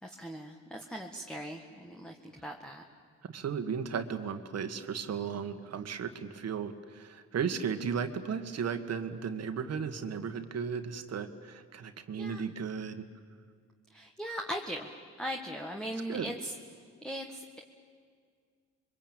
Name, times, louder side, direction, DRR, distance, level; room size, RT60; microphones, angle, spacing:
voice 1, 0.0-2.8 12.2-12.4 13.9-16.5 17.0-17.6, equal, ahead, 2 dB, 1.8 m, -39 dB
voice 2, 3.2-13.1 16.1-16.3, right 6 dB, 55° right, 8 dB, 1.9 m, -35 dB
28.0 x 23.5 x 9.1 m, 2.1 s
cardioid pair, 90°, 30 cm